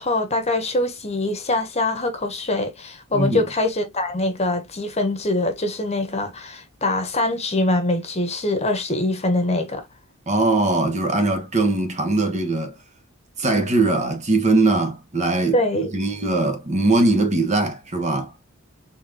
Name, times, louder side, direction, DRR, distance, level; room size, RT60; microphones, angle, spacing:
voice 1, 0.0-9.9 15.5-15.9, left 2 dB, 30° left, 1.2 m, -23 dB
voice 2, 3.1-3.4 10.3-12.7 13.4-18.3, right 2 dB, 35° right, 1.2 m, -21 dB
4.4 x 3.6 x 2.8 m
head